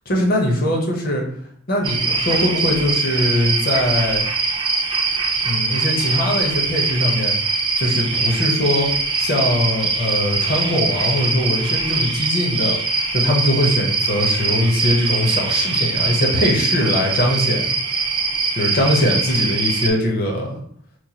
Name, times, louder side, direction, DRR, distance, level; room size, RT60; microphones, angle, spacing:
voice 1, 0.1-1.2 1.7-4.2 5.4-7.3 7.8-8.9 9.2-12.8 13.1-17.7 18.5-20.6, left 1 dB, 40° left, 0 dB, 0.7 m, -21 dB
sound 1, 1.8-19.9, right 3 dB, 20° right, 0.3 m, -22 dB
4.5 x 2.2 x 2.8 m, 0.64 s
head